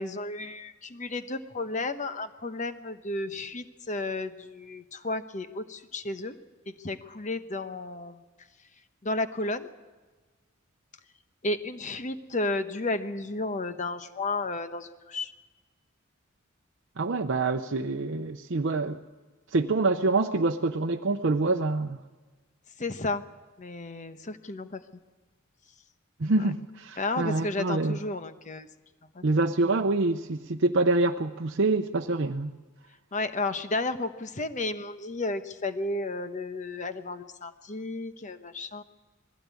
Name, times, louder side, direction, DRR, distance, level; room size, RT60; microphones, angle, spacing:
voice 1, 0.0-6.4 6.7-8.2 9.0-9.7 11.4-15.3 22.8-23.2 23.6-24.8 26.4-26.5 27.0-28.7 29.1-29.2 33.1-38.8, left 2 dB, 35° left, 10 dB, 1.0 m, -33 dB
voice 2, 17.0-19.0 19.5-22.0 26.2-28.0 29.2-32.6, right 2 dB, 60° right, 3 dB, 0.7 m, -26 dB
20.5 x 16.0 x 8.4 m, 1.3 s
head